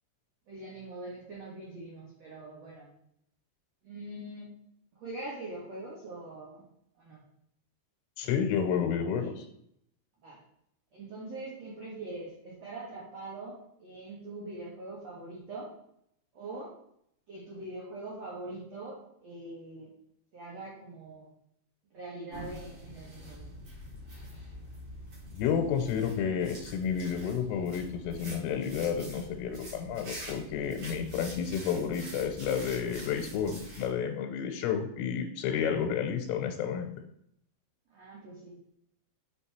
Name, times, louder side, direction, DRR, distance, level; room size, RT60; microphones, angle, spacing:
voice 1, 0.5-2.9 3.8-4.5 4.9-6.7 7.0-7.2 9.2-9.3 10.2-10.4 10.9-15.7 16.3-16.7 17.3-19.9 20.3-21.3 21.9-23.4 37.9-38.6, right 2 dB, 85° right, -5 dB, 1.4 m, -43 dB
voice 2, 8.2-9.4 25.3-36.9, left 7 dB, 85° left, 3 dB, 3.3 m, -31 dB
sound 1, 22.3-33.9, equal, 35° right, 2.9 m, -45 dB
6.7 x 5.4 x 4.3 m, 0.72 s
omnidirectional pair, 5.7 m